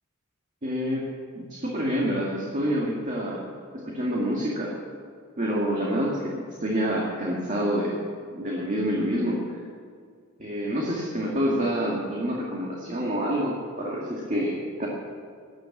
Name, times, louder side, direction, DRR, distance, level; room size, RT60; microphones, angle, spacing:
voice 1, 0.6-1.1 1.4-3.5 3.8-4.8 5.4-8.0 8.3-9.6 10.4-14.9, equal, 35° right, -4 dB, 2.2 m, -27 dB
18.0 x 10.5 x 7.3 m, 2.2 s
head